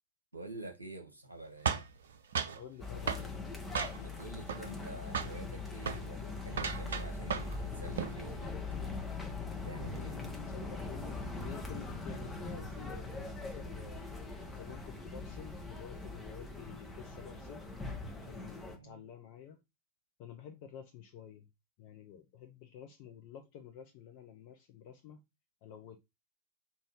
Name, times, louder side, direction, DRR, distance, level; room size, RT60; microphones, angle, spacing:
voice 1, 0.3-1.8 3.9-8.5 9.6-10.2 18.8-19.0, right 2 dB, 85° right, 1.0 m, -47 dB
sound 1, 1.7-2.6 3.1-3.3 3.7-4.2 4.5-4.9 5.1-5.4 5.8-6.0 6.5-7.6 7.9-8.2, right 6 dB, 65° right, 0.6 m, -35 dB
voice 2, 2.5-3.5 10.5-14.0 14.5-17.7 18.1-19.6 20.2-21.5 21.8-25.2 25.6-26.0, left 8 dB, 45° left, 0.6 m, -50 dB
sound 2, 2.8-18.8, left 3 dB, 10° left, 1.1 m, -41 dB
3.6 x 2.6 x 4.6 m
figure-of-eight pair, 90°, 0 cm